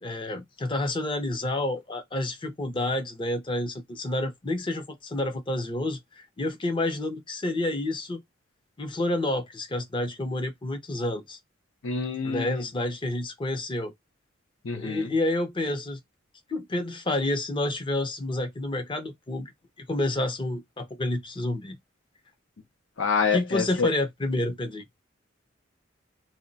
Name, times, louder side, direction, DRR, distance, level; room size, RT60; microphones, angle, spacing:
voice 1, 0.0-8.2 8.8-11.4 12.2-13.9 14.7-16.0 16.5-19.5 19.8-21.8 23.3-24.8, left 1 dB, 25° left, 0.6 m, -29 dB
voice 2, 11.8-12.6 14.6-15.1 23.0-23.9, left 5 dB, 75° left, 0.6 m, -27 dB
2.2 x 2.1 x 3.8 m
head